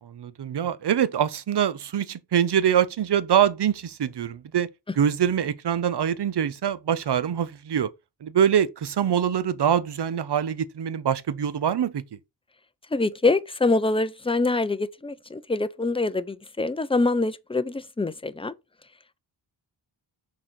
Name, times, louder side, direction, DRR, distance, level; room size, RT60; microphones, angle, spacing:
voice 1, 0.0-4.7 5.0-7.9 8.2-12.0, right 9 dB, 65° right, 0.8 m, -24 dB
voice 2, 12.9-18.5, left 3 dB, 10° left, 0.6 m, -25 dB
6.3 x 4.1 x 4.4 m
cardioid pair, 65°, 44 cm